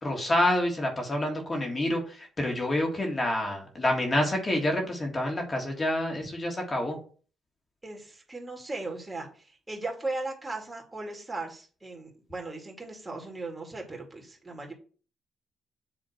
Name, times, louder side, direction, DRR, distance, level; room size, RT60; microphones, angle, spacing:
voice 1, 0.0-7.0, left 1 dB, 30° left, 1 dB, 1.8 m, -28 dB
voice 2, 7.8-14.7, right 2 dB, 20° right, 1 dB, 2.4 m, -37 dB
7.9 x 3.5 x 4.4 m, 0.40 s
cardioid pair, 90°, 0 cm